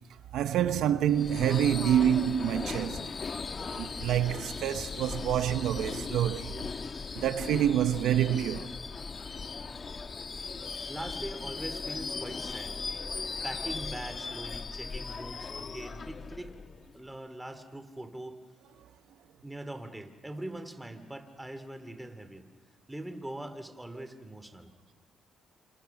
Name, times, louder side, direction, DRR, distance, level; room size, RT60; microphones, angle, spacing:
voice 1, 0.3-3.0 3.8-6.5 7.1-8.7, right 10 dB, 80° right, 0.9 m, -27 dB
Subway metro underground / Screech, 1.1-17.0, left 4 dB, 40° left, 1.2 m, -38 dB
voice 2, 10.9-12.8 13.4-16.6 16.9-18.4 19.4-22.5 22.9-24.7, right 1 dB, 10° right, 2.6 m, -42 dB
28.5 x 27.5 x 5.9 m
cardioid pair, 90°, 0 cm